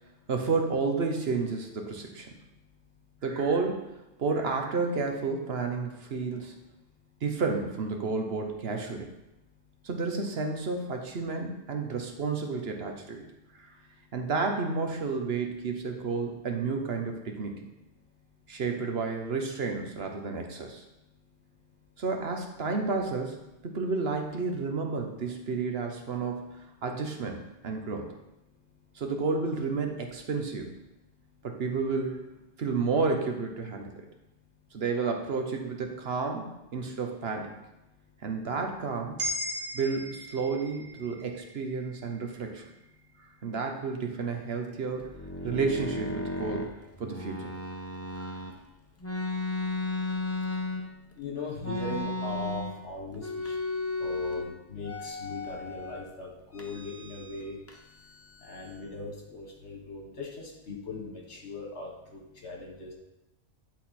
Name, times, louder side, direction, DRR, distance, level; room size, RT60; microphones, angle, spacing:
voice 1, 0.3-2.3 3.2-6.5 7.2-9.1 9.8-13.2 14.1-17.6 18.5-20.8 22.0-23.4 23.6-26.5 26.8-28.1 28.9-30.7 31.4-32.2 32.6-33.9 34.7-36.5 36.7-37.5 38.2-39.2 39.7-42.7 43.4-45.1 45.4-46.7 47.0-47.5 48.2-48.3, right 4 dB, 60° right, 3 dB, 1.2 m, -31 dB
sound 1, 39.2-43.4, equal, 85° right, 1.5 m, -38 dB
sound 2, 45.0-48.5 49.0-51.1 51.6-52.9 53.1-54.5 54.8-56.0 56.5-57.4 57.7-58.9, left 2 dB, 15° left, 0.7 m, -35 dB
voice 2, 51.2-53.6 54.0-57.6 58.4-62.9, left 3 dB, 75° left, -1 dB, 1.9 m, -39 dB
10.5 x 4.0 x 4.2 m, 0.94 s
omnidirectional pair, 1.2 m